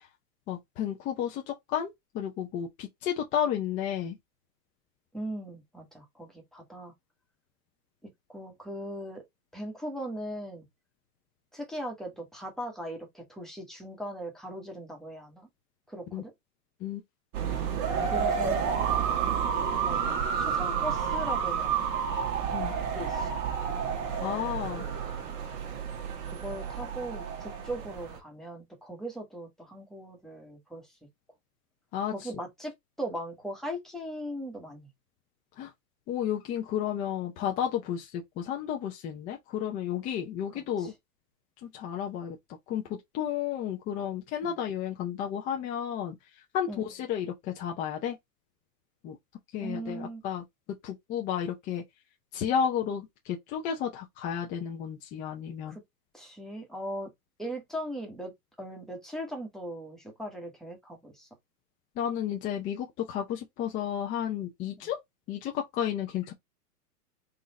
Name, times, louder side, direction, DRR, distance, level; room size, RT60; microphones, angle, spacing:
voice 1, 0.5-4.2 16.1-16.2 16.8-17.0 22.5-22.7 24.2-24.9 31.9-32.1 35.6-35.7 36.1-40.9 41.6-42.4 42.7-46.1 46.5-48.2 49.0-49.2 49.5-50.4 50.8-51.8 52.3-55.8 62.0-65.0 65.3-66.3, left 9 dB, 20° left, 0.5 m, -32 dB
voice 2, 5.1-6.9 8.3-9.2 9.5-10.6 11.5-15.5 15.9-16.3 18.0-18.7 19.3-19.4 19.8-21.9 23.0-23.3 24.1-24.6 26.2-30.9 32.1-32.7 33.0-34.9 40.5-40.9 44.4-44.6 46.7-46.8 49.6-50.2 55.7-55.8 56.1-57.1 57.4-58.3 58.6-61.3 64.8-64.9, right 1 dB, ahead, 1.2 m, -39 dB
sound 1, 17.3-28.2, right 7 dB, 35° right, 1.3 m, -30 dB
4.0 x 2.5 x 4.0 m
hypercardioid pair, 130°, 47 cm